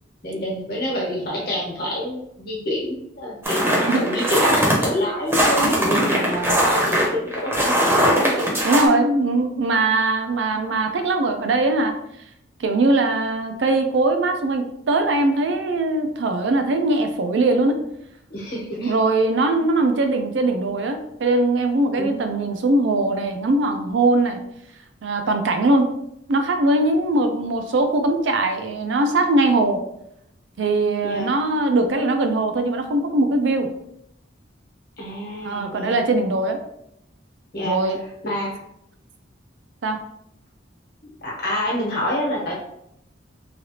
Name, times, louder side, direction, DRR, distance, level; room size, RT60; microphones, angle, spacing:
voice 1, 0.2-8.5 18.3-18.9 22.0-22.5 31.0-31.3 35.0-36.0 37.5-37.9 38.2-38.6 41.2-42.5, left 1 dB, 55° left, -3 dB, 1.1 m, -27 dB
sound 1, 3.5-4.9 5.3-8.9, right 1 dB, 15° right, 0.7 m, -20 dB
voice 2, 8.6-11.9 12.6-17.8 18.8-24.4 25.0-25.9 26.3-29.8 30.6-33.7 35.4-36.6 37.6-38.0 39.8-40.0, right 2 dB, 75° right, 6 dB, 0.4 m, -21 dB
3.2 x 2.4 x 2.7 m, 0.77 s
head